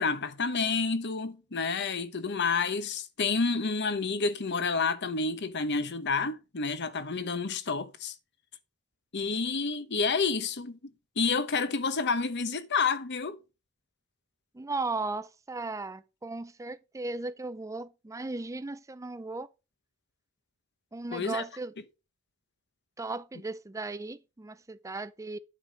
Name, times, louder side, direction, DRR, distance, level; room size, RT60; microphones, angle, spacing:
voice 1, 0.0-8.1 9.1-13.4 21.1-21.4, left 4 dB, 55° left, 1.0 m, -29 dB
voice 2, 14.5-19.5 20.9-21.7 23.0-25.4, right 3 dB, 15° right, 0.4 m, -36 dB
8.8 x 5.7 x 5.0 m
head